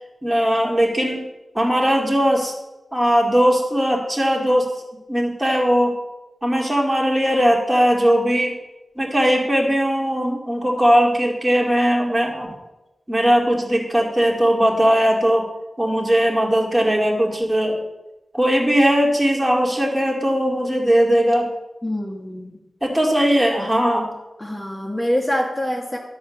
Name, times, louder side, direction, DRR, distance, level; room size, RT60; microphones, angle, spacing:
voice 1, 0.2-1.3 1.5-2.5 2.9-4.7 5.1-6.0 6.4-8.5 9.0-12.5 13.1-15.5 15.8-17.8 18.3-21.5 22.8-24.1, equal, 15° right, 0 dB, 2.4 m, -19 dB
voice 2, 21.8-22.6 24.4-26.0, left 1 dB, 10° left, -2 dB, 1.5 m, -25 dB
11.0 x 4.2 x 7.2 m, 0.99 s
cardioid pair, 60°, 0 cm